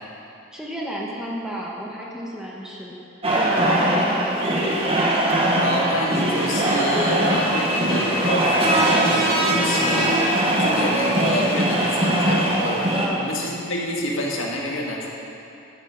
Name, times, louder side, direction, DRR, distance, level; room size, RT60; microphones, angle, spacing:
voice 1, 0.5-2.9 3.3-4.7 12.9-13.3, equal, 5° right, -4 dB, 1.3 m, -33 dB
sound 1, 3.2-13.1, right 1 dB, 30° right, 1.4 m, -21 dB
voice 2, 5.6-12.9 13.2-15.1, left 1 dB, 80° left, -2 dB, 1.8 m, -28 dB
11.5 x 7.4 x 6.5 m, 2.7 s
head